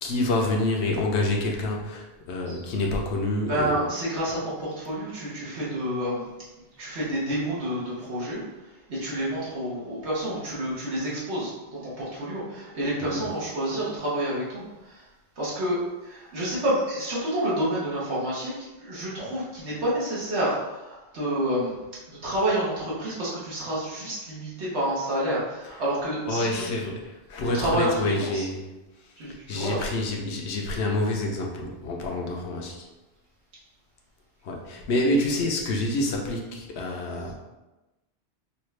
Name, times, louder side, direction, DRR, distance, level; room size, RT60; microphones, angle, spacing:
voice 1, 0.0-3.7 13.0-13.3 25.6-25.8 26.3-29.1 29.5-32.9 34.4-37.3, left 2 dB, 75° left, 0 dB, 1.0 m, -27 dB
voice 2, 3.5-6.3 6.8-8.4 8.9-15.0 15.4-21.7 22.1-26.7 27.4-28.5 29.2-29.8, right 1 dB, 80° right, -8 dB, 1.5 m, -29 dB
5.5 x 2.4 x 3.2 m, 1.1 s
omnidirectional pair, 1.1 m